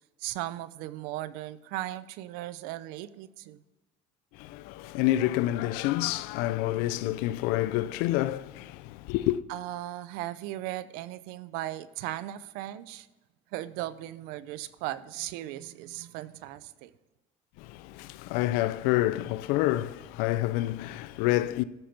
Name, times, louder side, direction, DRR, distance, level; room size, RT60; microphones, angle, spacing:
voice 1, 0.2-3.6 9.5-13.1 13.5-16.9, right 15 dB, 85° right, 0.6 m, -37 dB
voice 2, 4.3-9.4 17.6-21.6, left 15 dB, 85° left, 0.5 m, -28 dB
13.5 x 5.9 x 5.1 m
supercardioid pair, 100°, 15 cm